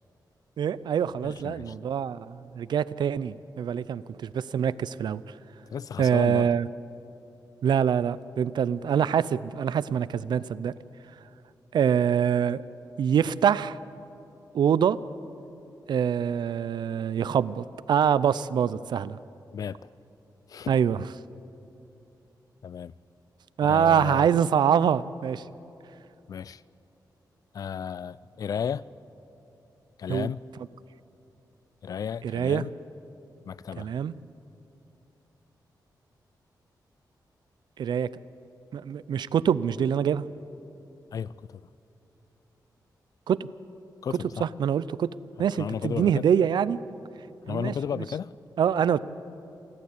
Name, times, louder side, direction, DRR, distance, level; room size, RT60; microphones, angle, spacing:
voice 1, 0.6-5.2 6.0-6.7 7.6-10.7 11.7-12.6 13.0-13.8 14.5-15.0 15.9-19.2 20.7-21.0 23.6-25.4 30.1-30.3 32.2-32.6 33.8-34.1 37.8-38.1 38.7-40.2 43.3-43.5 44.4-45.1 45.4-46.8 47.5-48.0 48.6-49.0, right 8 dB, 75° right, 0.5 m, -25 dB
voice 2, 1.2-1.7 5.7-6.5 19.5-19.9 20.5-20.8 22.6-22.9 23.6-24.3 26.3-26.6 27.5-28.9 30.0-30.4 31.8-32.7 33.5-33.9 41.1-41.7 44.0-44.5 45.4-46.2 47.5-48.3, left 7 dB, 55° left, 0.4 m, -33 dB
28.5 x 12.0 x 8.3 m
wide cardioid pair, 175°, 8 cm